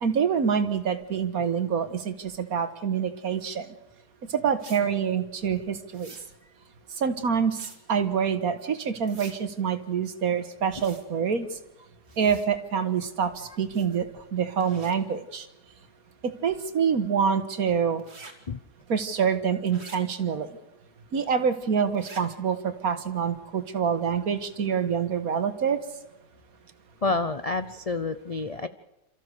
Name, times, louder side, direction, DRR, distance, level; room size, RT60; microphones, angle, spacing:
voice 1, 0.0-3.7 4.3-6.1 7.0-7.6 7.9-11.5 12.2-13.3 13.6-14.1 14.3-15.5 16.4-18.0 18.9-20.5 21.1-25.8, right 7 dB, 65° right, 10 dB, 1.8 m, -26 dB
sound 1, 4.6-4.8 5.9-6.2 7.5-7.8 9.0-9.4 10.7-11.0 12.1-12.5 13.7-14.0 14.6-14.9 18.0-18.3 19.7-20.0 21.9-22.2, right 3 dB, 40° right, 2.6 m, -46 dB
voice 2, 27.0-28.7, left 3 dB, 45° left, 11 dB, 0.4 m, -28 dB
28.5 x 14.0 x 6.7 m, 0.95 s
omnidirectional pair, 1.7 m